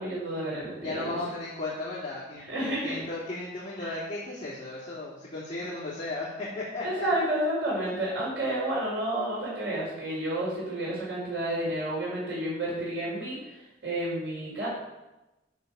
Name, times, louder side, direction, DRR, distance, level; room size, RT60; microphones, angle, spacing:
voice 1, 0.0-1.2 2.5-3.0 3.8-3.9 6.8-13.4 13.8-14.7, right 1 dB, 85° right, -5 dB, 4.6 m, -30 dB
voice 2, 0.8-7.1, left 2 dB, 30° left, -9 dB, 3.1 m, -35 dB
11.0 x 6.5 x 7.1 m, 1.0 s
head